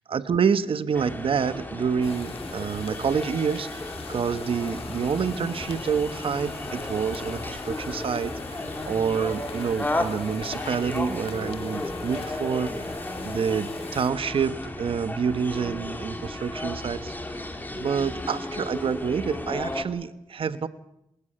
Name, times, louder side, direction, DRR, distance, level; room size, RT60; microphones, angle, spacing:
voice 1, 0.1-3.7 4.1-8.3 8.9-12.7 13.2-17.4 17.7-20.7, right 6 dB, 70° right, 13 dB, 1.2 m, -27 dB
sound 1, 0.9-19.8, left 1 dB, 20° left, 3.2 m, -34 dB
sound 2, 2.0-14.1, left 6 dB, 80° left, 1.8 m, -42 dB
27.5 x 13.5 x 8.8 m, 0.83 s
cardioid pair, 85°, 10 cm